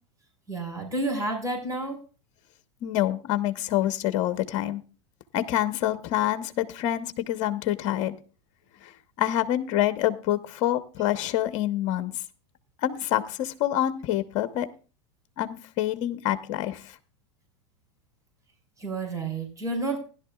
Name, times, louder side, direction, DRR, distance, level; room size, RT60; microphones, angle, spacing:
voice 1, 0.5-2.0 18.8-20.0, right 2 dB, 20° right, 2 dB, 4.3 m, -30 dB
voice 2, 2.8-4.8 5.3-8.2 8.8-8.9 9.2-12.2 12.8-14.7 15.4-17.0, left 13 dB, 50° left, 12 dB, 1.0 m, -27 dB
16.0 x 11.0 x 2.4 m, 0.35 s
hypercardioid pair, 105°, 15 cm